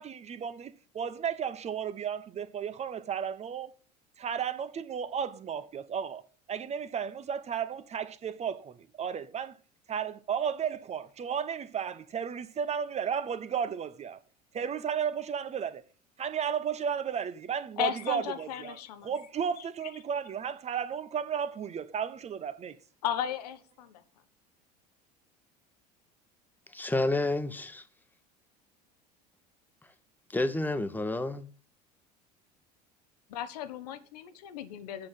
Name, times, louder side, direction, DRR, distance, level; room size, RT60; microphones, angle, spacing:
voice 1, 0.0-3.7 4.2-6.2 6.5-9.6 9.9-14.2 14.5-15.8 16.2-22.8, right 7 dB, 30° right, 0.8 m, -34 dB
voice 2, 17.8-19.1 23.0-24.0 33.3-35.1, left 10 dB, 70° left, 1.0 m, -35 dB
voice 3, 26.7-27.8 30.3-31.5, left 2 dB, 10° left, 1.2 m, -29 dB
7.8 x 6.3 x 7.3 m
hypercardioid pair, 70°, 21 cm